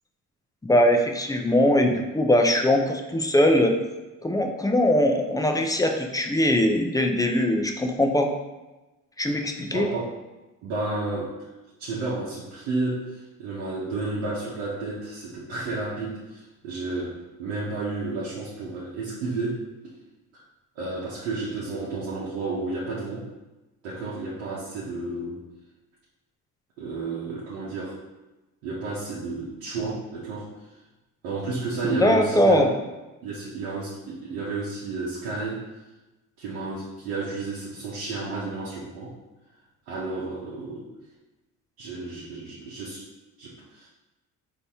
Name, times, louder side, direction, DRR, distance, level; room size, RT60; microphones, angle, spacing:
voice 1, 0.6-3.8 4.2-8.3 9.2-9.9 31.9-32.7, left 1 dB, 10° left, 4 dB, 0.4 m, -21 dB
voice 2, 9.7-10.2 10.6-11.3 11.8-19.6 20.8-23.3 23.8-25.4 26.8-28.0 28.6-30.5 31.2-32.7 33.2-35.6 36.4-39.1 39.9-40.9 41.8-43.0 43.4-43.9, right 3 dB, 85° right, -6 dB, 0.8 m, -32 dB
4.0 x 2.7 x 3.4 m, 1.1 s
hypercardioid pair, 60°, 40 cm